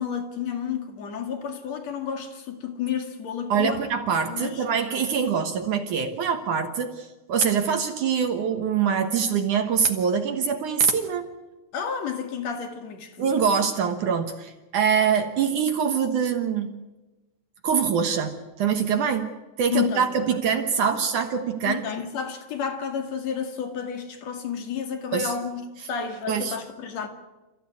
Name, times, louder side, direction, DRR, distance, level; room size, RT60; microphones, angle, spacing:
voice 1, 0.0-3.8 4.3-4.6 11.7-13.3 19.7-20.4 21.7-25.6 25.9-27.1, left 7 dB, 45° left, 2.8 m, -31 dB
voice 2, 3.5-11.3 13.2-16.7 17.6-19.3 19.6-21.8 25.1-25.3 26.3-26.6, right 6 dB, 65° right, 2.2 m, -24 dB
29.0 x 15.0 x 9.6 m
omnidirectional pair, 4.8 m